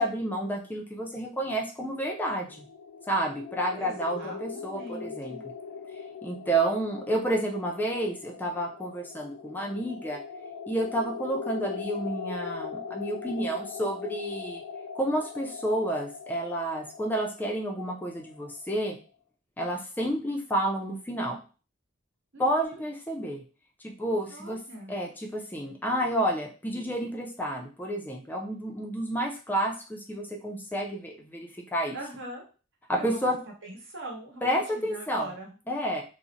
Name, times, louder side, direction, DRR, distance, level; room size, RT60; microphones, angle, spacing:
voice 1, 0.0-2.7 3.1-5.4 6.2-10.2 10.7-14.6 14.9-19.0 19.6-21.4 22.4-23.4 23.8-24.6 24.9-32.0 32.9-33.4 34.4-35.3 35.7-36.0, right 1 dB, 10° left, 0 dB, 0.4 m, -30 dB
sound 1, 1.9-18.7, left 5 dB, 80° left, 0.3 m, -41 dB
voice 2, 3.8-5.4 22.3-22.8 24.3-24.9 31.9-32.4 33.0-33.2 33.6-35.5, right 1 dB, 60° right, 0 dB, 1.0 m, -42 dB
2.5 x 2.0 x 3.9 m, 0.36 s
head